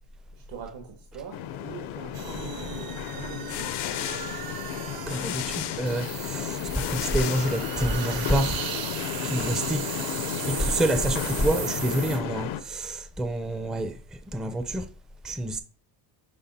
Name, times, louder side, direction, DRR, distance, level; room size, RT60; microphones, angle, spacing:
voice 1, 0.3-3.7 4.1-4.2 13.7-14.0, right 6 dB, 75° right, 1.5 m, -43 dB
sound 1, 1.3-12.6, left 10 dB, 85° left, 0.8 m, -33 dB
sound 2, 2.1-12.2, right 9 dB, 50° right, 0.7 m, -37 dB
sound 3, 3.2-8.1, left 14 dB, 60° left, 0.5 m, -36 dB
voice 2, 5.1-8.6 9.2-9.9 10.4-14.0 14.3-14.9 15.2-15.6, right 1 dB, ahead, 0.4 m, -27 dB
9.9 x 3.3 x 4.1 m
cardioid pair, 145°, 46 cm